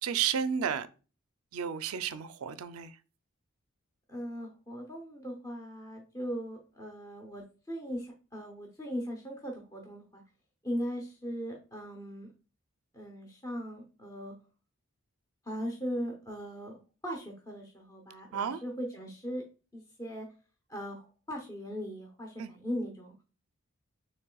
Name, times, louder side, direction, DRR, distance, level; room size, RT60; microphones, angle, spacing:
voice 1, 0.0-0.9 1.5-2.9 18.3-18.6 22.4-22.5, right 7 dB, 80° right, 0.5 m, -32 dB
voice 2, 4.1-10.2 10.6-12.3 12.9-14.3 15.4-19.4 19.7-20.3 20.7-23.1, equal, 15° left, 0.8 m, -39 dB
6.7 x 3.3 x 2.3 m
head